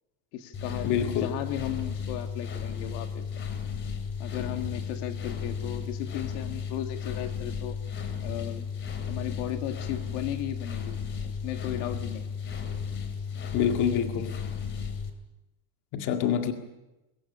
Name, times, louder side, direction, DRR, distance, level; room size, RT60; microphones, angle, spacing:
voice 1, 0.3-3.4 4.2-7.8 8.2-8.7 9.1-11.0 11.2-12.2 16.0-16.4, left 12 dB, 75° left, 6 dB, 2.1 m, -36 dB
sound 1, 0.5-15.1, left 6 dB, 30° left, 2.7 m, -34 dB
voice 2, 0.8-1.3 13.5-14.4 15.9-16.5, left 8 dB, 50° left, 5 dB, 2.0 m, -26 dB
22.5 x 14.0 x 9.9 m, 0.99 s
cardioid pair, 160°, 38 cm